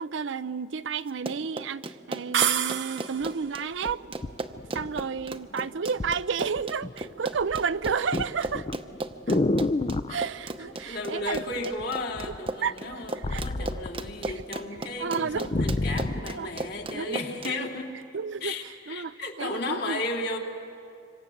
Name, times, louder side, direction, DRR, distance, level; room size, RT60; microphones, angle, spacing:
voice 1, 0.0-4.1 4.7-8.7 9.3-9.4 10.1-11.7 12.6-13.9 14.2-14.4 14.8-15.7 16.3-16.5 16.9-17.2 17.5-17.6 18.1-20.0, right 6 dB, 90° right, 14 dB, 0.6 m, -32 dB
Run, 1.1-17.5, right 2 dB, 30° right, 0.9 m, -36 dB
sound 1, 2.3-3.4, right 9 dB, 70° right, 0.9 m, -27 dB
sound 2, 3.2-3.3 3.9-5.3 6.0-6.2 6.6-7.0 7.3-10.2 11.3-11.8 12.1-14.4 14.8-14.9 15.2-16.3 17.0-17.1, left 2 dB, 30° left, 0.6 m, -29 dB
voice 2, 10.6-18.0 18.4-20.4, left 2 dB, 60° left, 1 dB, 3.1 m, -34 dB
26.5 x 25.5 x 7.8 m, 2.5 s
head